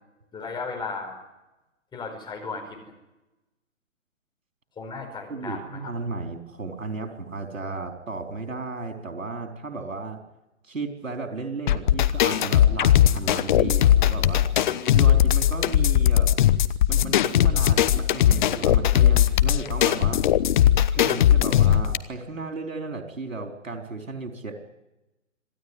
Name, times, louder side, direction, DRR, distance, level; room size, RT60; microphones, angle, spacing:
voice 1, 0.3-1.2 1.9-2.8 4.8-5.9, left 4 dB, 10° left, 1 dB, 4.9 m, -35 dB
voice 2, 5.3-10.2 10.6-14.5 14.9-16.3 16.9-20.2 20.9-24.6, right 3 dB, 80° right, 4 dB, 4.2 m, -34 dB
sound 1, 11.7-22.0, left 11 dB, 40° left, 1.0 m, -19 dB
26.5 x 15.5 x 9.8 m, 0.99 s
figure-of-eight pair, 135°, 38 cm